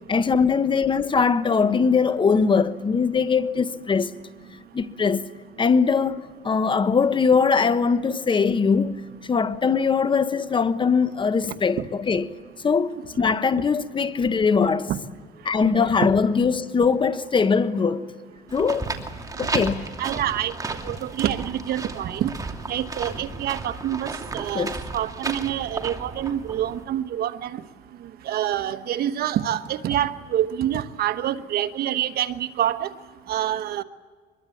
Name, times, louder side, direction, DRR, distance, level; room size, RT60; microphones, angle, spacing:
voice 1, 0.1-4.1 4.7-5.3 5.6-9.0 9.2-11.8 12.1-12.3 12.6-14.9 15.4-18.0 18.5-18.9 19.4-19.8 24.5-24.7, left 5 dB, 30° left, 1.2 m, -21 dB
sound 1, 18.5-26.8, right 3 dB, 20° right, 2.7 m, -34 dB
voice 2, 20.0-20.5 20.8-22.3 22.7-27.6 28.2-32.9 33.3-33.8, right 11 dB, 65° right, 1.2 m, -26 dB
24.5 x 22.0 x 8.5 m
cardioid pair, 110°, 17 cm